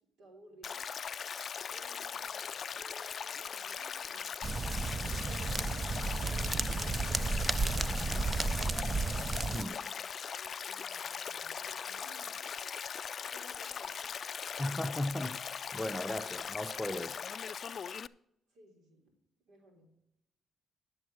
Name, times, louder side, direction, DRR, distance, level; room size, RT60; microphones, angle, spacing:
voice 1, 0.2-0.9 1.7-4.3 5.3-8.9 9.7-9.9 10.2-12.4 13.2-14.2 18.5-19.0 19.5-19.9, right 1 dB, 85° right, 3.1 m, -58 dB
Stream, 0.6-18.1, left 7 dB, 50° left, 0.3 m, -40 dB
sound 1, 4.4-9.7, right 3 dB, 25° right, 0.4 m, -33 dB
voice 2, 14.6-17.2, left 1 dB, 10° left, 0.6 m, -36 dB
10.5 x 7.2 x 6.2 m
cardioid pair, 90°, 0 cm